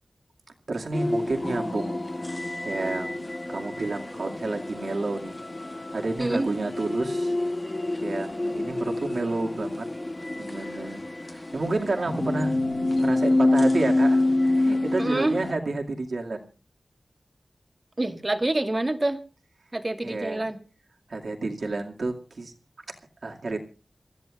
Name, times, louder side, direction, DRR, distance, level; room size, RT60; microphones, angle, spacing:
voice 1, 0.7-7.3 8.0-9.9 10.4-12.6 13.0-16.5 20.0-20.5 21.1-22.5 23.2-23.6, right 3 dB, 70° right, 2.3 m, -30 dB
sound 1, 0.9-15.5, left 2 dB, 30° left, 1.3 m, -27 dB
voice 2, 6.2-6.5 15.0-15.4 18.0-19.2 19.7-20.6, right 2 dB, 30° right, 1.6 m, -26 dB
28.5 x 14.0 x 2.5 m
wide cardioid pair, 70°, 0 cm